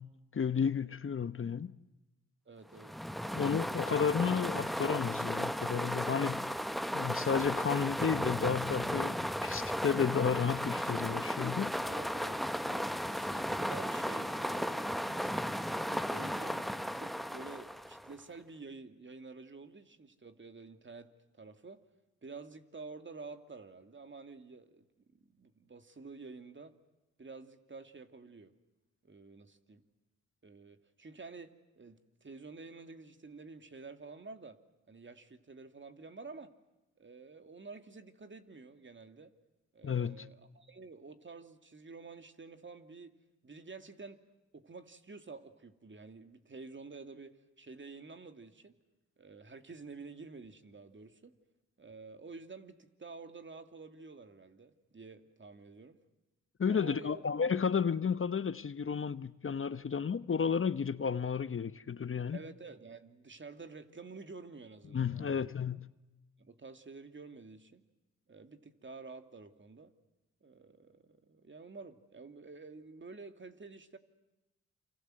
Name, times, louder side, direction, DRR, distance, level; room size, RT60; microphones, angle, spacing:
voice 1, 0.0-1.7 3.3-6.5 6.9-11.8 39.8-40.3 56.6-62.4 64.9-65.9, left 6 dB, 45° left, 0.9 m, -32 dB
voice 2, 2.5-3.9 11.9-21.8 22.2-24.9 25.1-26.7 27.2-28.5 29.0-29.8 30.4-34.6 34.9-36.5 37.0-39.3 39.7-43.2 43.4-44.2 44.5-48.8 49.2-51.4 51.8-56.0 56.7-57.2 62.3-65.5 66.4-67.8 68.3-69.9 70.4-74.0, right 4 dB, 40° right, 2.5 m, -50 dB
sound 1, 2.7-18.2, equal, ahead, 1.2 m, -35 dB
28.5 x 26.0 x 7.8 m
cardioid pair, 55°, 31 cm